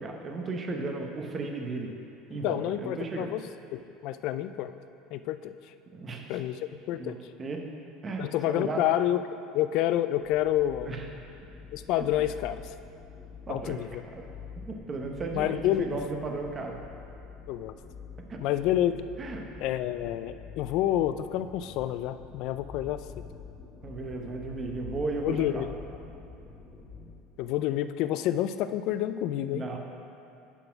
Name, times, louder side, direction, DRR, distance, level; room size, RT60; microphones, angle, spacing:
voice 1, 0.0-1.9 2.3-3.3 5.9-6.4 7.0-7.6 8.0-8.8 10.8-11.1 12.0-12.1 13.5-13.8 14.6-16.8 18.3-18.4 19.2-19.5 23.8-25.7 29.4-29.8, right 3 dB, 30° right, 2 dB, 0.9 m, -35 dB
voice 2, 2.4-3.4 3.7-4.7 5.1-5.5 6.3-7.2 8.2-9.2 9.5-10.9 11.7-12.6 13.5-14.0 15.3-16.0 17.5-17.7 18.4-19.0 19.6-23.0 25.2-25.7 27.4-29.6, left 12 dB, 65° left, 12 dB, 0.3 m, -28 dB
sound 1, 10.2-27.1, left 5 dB, 15° left, 1.2 m, -46 dB
9.9 x 4.2 x 5.8 m, 2.7 s
supercardioid pair, 105°, 0 cm